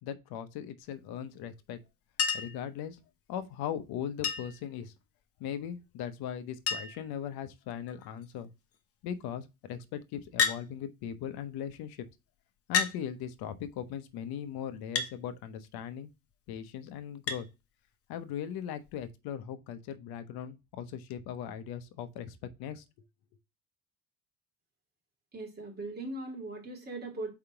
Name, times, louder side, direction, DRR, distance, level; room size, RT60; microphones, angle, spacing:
voice 1, 0.0-1.8 2.3-3.0 3.3-4.9 5.4-8.5 9.0-12.1 12.7-16.1 16.5-17.5 18.1-22.8, left 9 dB, 80° left, 0.9 m, -39 dB
Chink clink, 2.2-2.6 4.2-4.7 6.0-6.1 6.3-6.4 6.7-7.1 7.9-8.2 10.4-10.6 11.7-11.8 12.7-13.0 15.0-15.1 17.3-17.4 18.9-19.0, left 6 dB, 40° left, 1.0 m, -30 dB
voice 2, 25.3-27.3, right 2 dB, 25° right, 2.7 m, -39 dB
4.8 x 3.6 x 5.6 m
cardioid pair, 135°, 37 cm